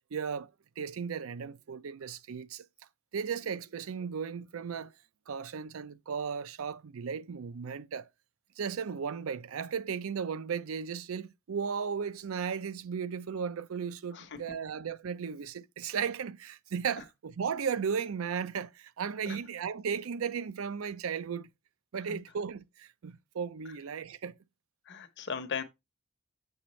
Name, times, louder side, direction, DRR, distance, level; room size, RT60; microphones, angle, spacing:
voice 1, 0.1-0.5 0.8-2.6 3.1-4.9 5.3-8.1 8.6-21.5 21.9-24.4, right 6 dB, 80° right, 0.5 m, -35 dB
voice 2, 14.1-14.6 17.0-17.1 19.3-19.5 21.9-22.2 23.6-23.8 24.9-25.6, left 6 dB, 60° left, 0.9 m, -39 dB
7.1 x 6.0 x 3.1 m
head